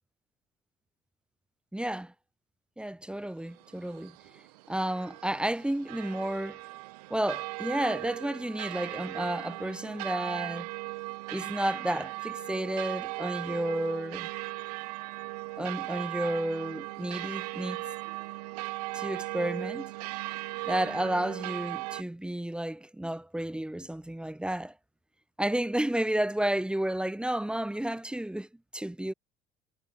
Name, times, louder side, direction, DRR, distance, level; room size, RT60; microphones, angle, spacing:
voice 1, 1.7-2.1 2.8-4.2 4.7-6.6 7.1-10.7 11.3-14.3 15.6-17.8 18.9-19.9 20.7-24.7 25.4-28.5 28.7-29.1, right 1 dB, 5° right, 0.8 m, -31 dB
sound 1, 3.5-22.0, right 22 dB, 70° right, 0.6 m, -38 dB
figure-of-eight pair, 60°, 21 cm